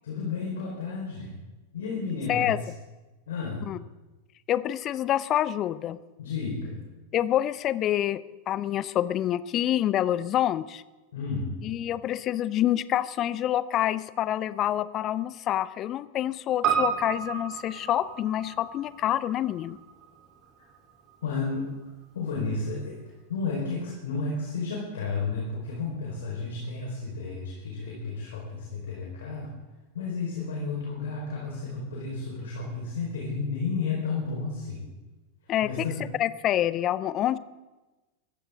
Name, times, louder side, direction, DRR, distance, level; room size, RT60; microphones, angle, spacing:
voice 1, 0.0-1.3 1.7-2.5 3.3-3.6 6.2-6.8 11.1-11.5 21.2-21.7 22.1-23.0 23.3-29.5 29.9-34.8 35.6-36.0, left 4 dB, 60° left, -2 dB, 4.6 m, -32 dB
voice 2, 4.5-6.0 7.1-8.2 8.5-10.8 11.6-19.8 35.5-35.9 36.2-37.4, left 12 dB, 30° left, 16 dB, 0.7 m, -27 dB
Piano, 16.6-21.1 21.4-21.5, right 7 dB, 35° right, 3.7 m, -32 dB
21.5 x 15.5 x 3.8 m, 1.1 s
figure-of-eight pair, 90°, 0 cm